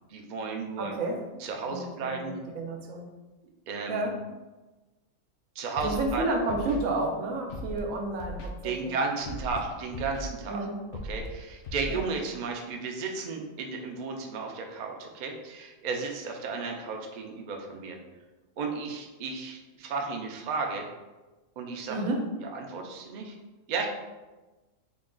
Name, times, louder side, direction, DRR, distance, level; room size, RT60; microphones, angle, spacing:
voice 1, 0.1-0.9 1.4-2.3 3.7-4.1 5.6-6.3 8.6-10.7 11.1-18.0 18.6-20.9 21.6-22.0 22.4-23.3 23.7-23.9, right 4 dB, 60° right, 1 dB, 0.4 m, -34 dB
voice 2, 0.8-1.2 1.7-3.1 3.9-4.2 5.8-8.9 10.5-10.8 11.9-12.1 21.9-22.2, right 2 dB, 90° right, 2 dB, 1.1 m, -31 dB
Scratching (performance technique), 5.8-6.1 6.5-6.8 7.5-7.8 8.2-8.5 9.2-9.6 9.9-10.3 10.9-11.3 11.6-11.9, left 1 dB, 60° left, 0.6 m, -37 dB
3.9 x 2.2 x 3.6 m, 1.2 s
omnidirectional pair, 1.4 m